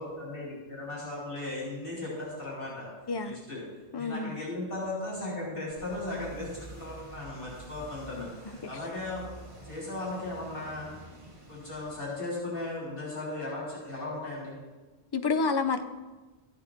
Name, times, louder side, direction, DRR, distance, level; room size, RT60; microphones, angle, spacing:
voice 1, 0.0-2.9 3.2-3.6 4.0-9.2 9.6-10.9 11.5-14.6, left 2 dB, 55° left, -7 dB, 4.2 m, -37 dB
voice 2, 3.9-4.4 15.1-15.8, left 4 dB, 30° left, 8 dB, 0.5 m, -28 dB
sound 1, 5.7-12.0, right 2 dB, 30° right, 1.7 m, -48 dB
14.0 x 8.8 x 4.4 m, 1.3 s
omnidirectional pair, 1.1 m